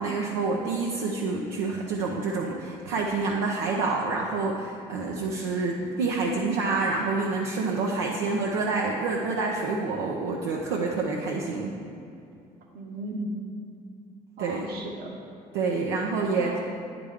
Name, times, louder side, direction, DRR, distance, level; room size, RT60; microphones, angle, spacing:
voice 1, 0.0-11.7 14.4-14.7 15.5-16.6, right 3 dB, 80° right, -2 dB, 0.6 m, -27 dB
voice 2, 11.4-11.9 12.7-13.4 14.4-15.1 16.4-16.6, right 1 dB, 60° right, 1 dB, 1.2 m, -36 dB
9.0 x 5.1 x 3.6 m, 2.5 s
hypercardioid pair, 60°, 18 cm